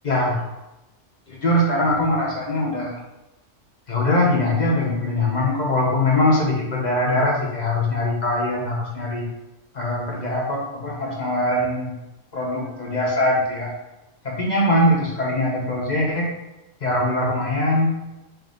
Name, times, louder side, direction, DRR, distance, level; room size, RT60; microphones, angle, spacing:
voice 1, 0.0-0.4 1.3-3.0 3.9-9.3 9.7-12.0 12.3-13.7 14.2-16.3 16.8-17.9, left 1 dB, 50° left, -3 dB, 0.5 m, -22 dB
3.5 x 2.5 x 3.7 m, 0.99 s
omnidirectional pair, 1.4 m